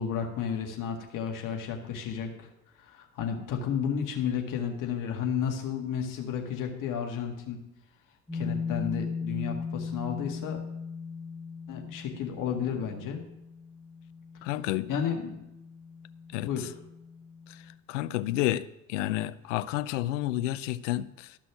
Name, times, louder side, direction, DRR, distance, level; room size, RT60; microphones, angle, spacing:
voice 1, 0.0-2.5 2.8-7.6 8.3-10.6 11.7-13.2 14.9-15.4 16.4-16.7, left 7 dB, 55° left, 2.0 m, -32 dB
sound 1, 8.3-17.7, left 5 dB, 15° left, 2.3 m, -38 dB
voice 2, 14.4-14.9 16.3-16.7 17.5-17.6 17.9-21.4, left 15 dB, 75° left, 0.6 m, -30 dB
13.5 x 6.1 x 6.1 m
hypercardioid pair, 60°, 38 cm